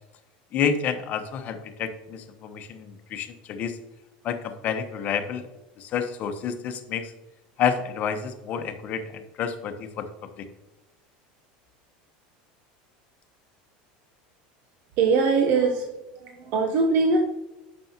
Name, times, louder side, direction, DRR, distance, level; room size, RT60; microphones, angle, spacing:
voice 1, 0.5-3.8 4.2-5.5 5.8-7.1 7.6-10.1 10.4-10.5, left 7 dB, 40° left, 7 dB, 1.0 m, -29 dB
voice 2, 15.0-15.9 16.1-17.2, right 4 dB, 50° right, 3 dB, 0.9 m, -22 dB
9.3 x 6.3 x 2.9 m, 1.0 s
supercardioid pair, 135°, 4 cm